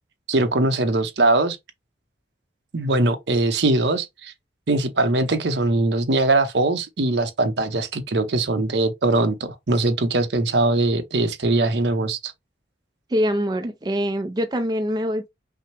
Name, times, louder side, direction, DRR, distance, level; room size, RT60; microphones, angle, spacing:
voice 1, 0.3-1.6 2.7-4.3 4.7-12.3, right 2 dB, 70° right, 0.8 m, -21 dB
voice 2, 13.1-15.3, equal, 20° right, 0.4 m, -24 dB
5.6 x 2.1 x 3.3 m
head